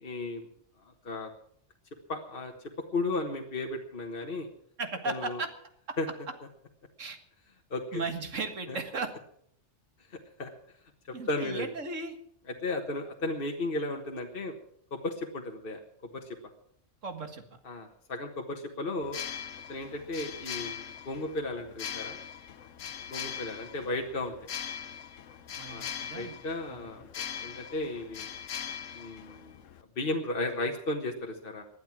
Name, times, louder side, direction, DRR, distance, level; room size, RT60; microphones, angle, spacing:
voice 1, 0.0-0.5 0.8-1.3 2.1-2.5 2.9-4.5 5.0-5.4 6.0-6.1 7.7-8.0 8.7-8.8 10.1-10.5 11.1-11.7 12.6-14.6 14.9-15.8 16.1-16.4 17.6-19.2 19.7-22.2 23.1-24.3 25.7-28.3 28.9-31.6, left 2 dB, 50° left, 2 dB, 1.6 m, -35 dB
voice 2, 4.8-5.5 5.9-6.0 7.0-7.2 7.9-9.1 11.1-12.2 17.0-17.4 25.6-26.4 26.7-26.9, right 4 dB, 80° right, 7 dB, 2.1 m, -36 dB
sound 1, 19.0-29.8, left 8 dB, 90° left, 1.2 m, -41 dB
19.5 x 11.5 x 6.1 m, 0.67 s
omnidirectional pair, 1.3 m